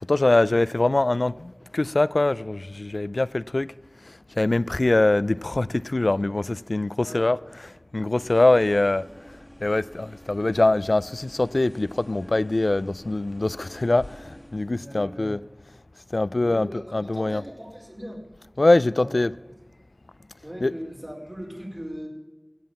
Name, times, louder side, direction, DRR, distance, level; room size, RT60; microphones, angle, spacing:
voice 1, 0.1-3.7 4.4-7.4 7.9-9.0 9.6-15.4 16.1-17.4 18.6-19.3 20.6-20.7, left 2 dB, 80° left, 0.3 m, -23 dB
sound 1, 8.2-14.7, equal, ahead, 2.1 m, -48 dB
voice 2, 14.7-15.4 16.4-18.3 18.9-19.1 20.4-22.1, equal, 30° right, 4.3 m, -38 dB
16.5 x 7.4 x 7.1 m
wide cardioid pair, 45°, 0 cm